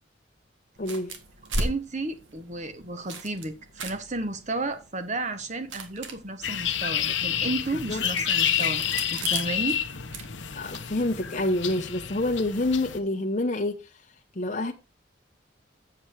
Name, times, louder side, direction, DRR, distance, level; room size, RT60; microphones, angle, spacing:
sound 1, 0.7-10.9, right 2 dB, 85° right, 1.7 m, -38 dB
voice 1, 0.8-1.2 7.9-8.0 10.5-13.8 14.3-14.7, left 2 dB, 40° left, 0.9 m, -27 dB
voice 2, 1.6-8.8 9.1-9.8, right 2 dB, 40° right, 1.3 m, -32 dB
sound 2, 6.4-13.0, left 9 dB, 75° left, 0.9 m, -29 dB
7.9 x 7.3 x 4.6 m
head